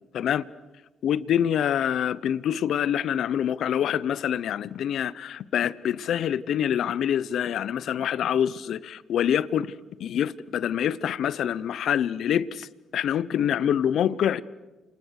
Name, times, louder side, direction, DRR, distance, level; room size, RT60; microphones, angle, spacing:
voice 1, 0.1-0.4 1.0-9.7 10.0-12.7 12.9-14.4, left 9 dB, 70° left, 0.8 m, -26 dB
28.5 x 27.5 x 6.6 m
cardioid pair, 90°, 0 cm